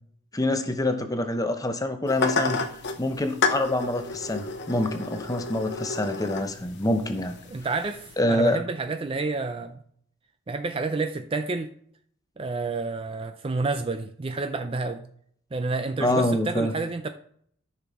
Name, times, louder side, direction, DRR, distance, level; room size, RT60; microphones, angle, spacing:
voice 1, 0.3-2.6 3.0-7.4 8.2-8.6 16.0-16.7, left 1 dB, 15° left, 0.7 m, -26 dB
sound 1, 2.1-8.1, left 4 dB, 50° left, 0.8 m, -31 dB
voice 2, 7.5-9.8 10.5-11.7 12.4-15.0 15.5-17.1, right 3 dB, 25° right, 0.4 m, -29 dB
13.5 x 5.9 x 3.6 m
head